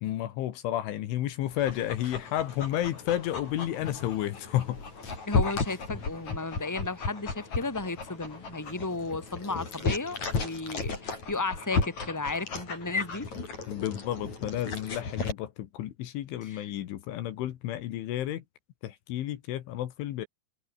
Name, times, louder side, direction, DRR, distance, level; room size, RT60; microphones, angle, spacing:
voice 1, 0.0-4.8 13.7-18.4 18.8-20.3, left 13 dB, 75° left, 3.9 m, -31 dB
Dog, 1.5-15.3, left 4 dB, 35° left, 6.8 m, -34 dB
voice 2, 5.3-13.3 16.4-16.7, left 3 dB, 5° left, 3.8 m, -34 dB
omnidirectional pair, 5.7 m